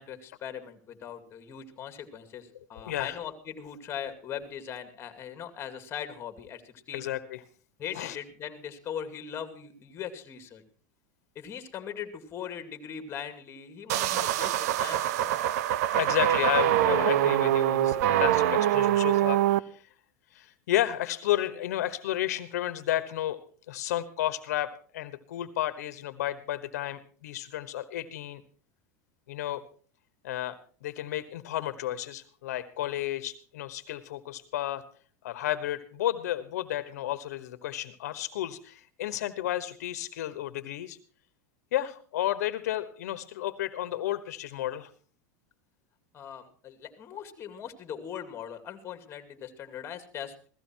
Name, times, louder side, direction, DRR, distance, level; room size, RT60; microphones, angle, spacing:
voice 1, 0.0-7.1 7.8-10.6 11.3-15.4 46.1-50.4, left 8 dB, 30° left, 8 dB, 2.4 m, -40 dB
voice 2, 2.7-3.2 6.9-7.4 7.9-8.2 15.9-19.9 20.3-23.4 23.7-28.4 29.3-29.6 30.2-30.6 30.8-34.8 35.2-41.0 41.7-44.9, left 13 dB, 85° left, 13 dB, 1.2 m, -32 dB
sound 1, 13.9-19.6, right 12 dB, 75° right, 0.7 m, -24 dB
16.5 x 14.0 x 4.5 m, 0.42 s
supercardioid pair, 135°, 8 cm